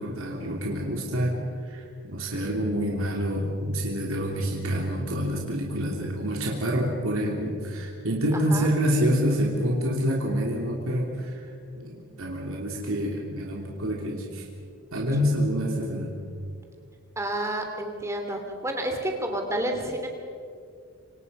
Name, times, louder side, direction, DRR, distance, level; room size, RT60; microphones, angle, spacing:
voice 1, 0.0-1.4 1.6-11.4 11.7-14.4 14.9-16.1, equal, 70° right, -1 dB, 3.1 m, -27 dB
voice 2, 8.3-8.7 17.2-20.1, right 1 dB, 15° right, 3 dB, 2.9 m, -30 dB
27.0 x 25.5 x 5.5 m, 2.3 s
head